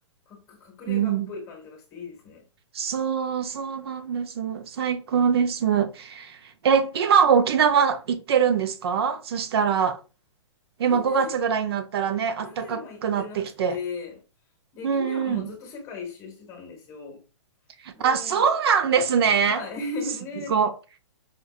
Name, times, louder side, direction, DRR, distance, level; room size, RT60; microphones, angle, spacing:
voice 1, 0.3-2.4 10.9-11.4 12.4-14.2 14.7-17.2 17.9-18.4 19.4-20.6, left 3 dB, 20° left, 1.0 m, -37 dB
voice 2, 0.9-1.3 2.7-10.0 10.8-13.8 14.8-15.5 17.8-19.6 20.5-20.7, right 7 dB, 55° right, 0.5 m, -23 dB
5.1 x 2.6 x 2.3 m
hypercardioid pair, 165°, 16 cm